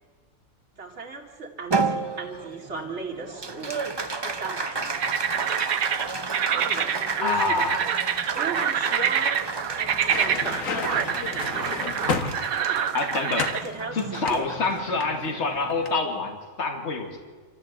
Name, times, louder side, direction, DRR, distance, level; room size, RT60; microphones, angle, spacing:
voice 1, 0.8-3.7 4.2-5.1 6.4-7.8 8.3-9.3 9.8-11.8 12.5-12.9 13.4-14.5, right 3 dB, 50° right, 0 dB, 2.8 m, -37 dB
Applause, 1.7-16.4, right 4 dB, 25° right, 0.6 m, -33 dB
sound 1, 4.9-13.6, right 8 dB, 80° right, 1.3 m, -27 dB
voice 2, 7.2-7.8 12.9-13.5 13.9-17.2, left 3 dB, 50° left, 4 dB, 2.3 m, -26 dB
sound 2, 9.9-12.8 13.4-13.7 14.2-15.4 15.7-16.0, left 5 dB, 70° left, 1.6 m, -31 dB
27.0 x 13.5 x 7.8 m, 1.5 s
omnidirectional pair, 1.5 m